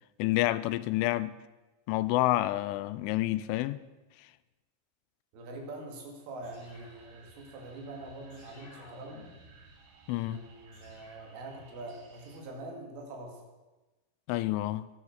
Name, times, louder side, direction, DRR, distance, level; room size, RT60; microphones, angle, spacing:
voice 1, 0.2-1.3 1.9-3.8 10.1-10.4 14.3-14.9, left 16 dB, 85° left, 3.1 m, -28 dB
voice 2, 5.3-9.3 10.2-13.4, right 2 dB, 85° right, 5.0 m, -44 dB
sound 1, 6.4-7.8 8.3-9.8 10.7-11.4, left 1 dB, 65° left, 7.7 m, -56 dB
sound 2, 6.6-12.4, right 4 dB, 55° right, 3.3 m, -58 dB
22.0 x 7.6 x 6.5 m
omnidirectional pair, 5.5 m